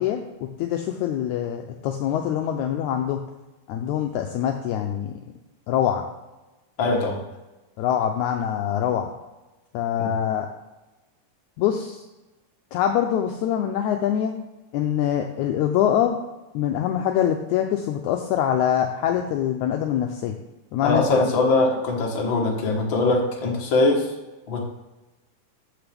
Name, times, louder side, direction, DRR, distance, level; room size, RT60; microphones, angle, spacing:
voice 1, 0.0-3.2 3.7-5.1 5.7-6.0 7.8-9.1 9.7-10.5 11.6-12.0 12.7-14.4 14.7-16.2 16.5-20.4 20.7-21.3, left 10 dB, 80° left, 4 dB, 1.8 m, -24 dB
voice 2, 6.8-7.2 10.0-10.1 20.8-24.1 24.5-24.6, left 2 dB, 45° left, 0 dB, 1.9 m, -22 dB
14.0 x 5.5 x 3.5 m, 1.1 s
omnidirectional pair, 3.8 m